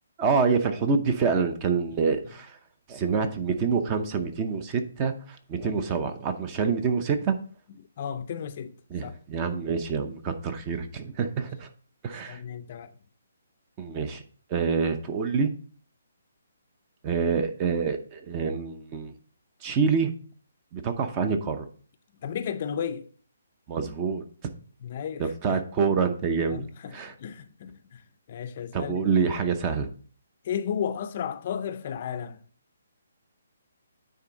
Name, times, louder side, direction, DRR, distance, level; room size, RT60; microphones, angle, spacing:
voice 1, 0.2-2.5 2.9-7.4 8.9-11.7 12.0-12.4 13.8-14.2 14.5-15.5 17.0-19.1 19.6-20.1 20.7-21.7 23.7-24.2 25.2-26.6 26.9-27.1 28.7-29.9, right 5 dB, 25° right, 0.6 m, -26 dB
voice 2, 8.0-8.7 9.0-9.1 12.3-12.9 22.2-23.1 24.8-25.6 26.5-28.0 28.3-29.1 29.4-29.5 30.4-32.4, left 8 dB, 40° left, 0.5 m, -33 dB
9.3 x 3.8 x 4.0 m
hypercardioid pair, 160°, 0 cm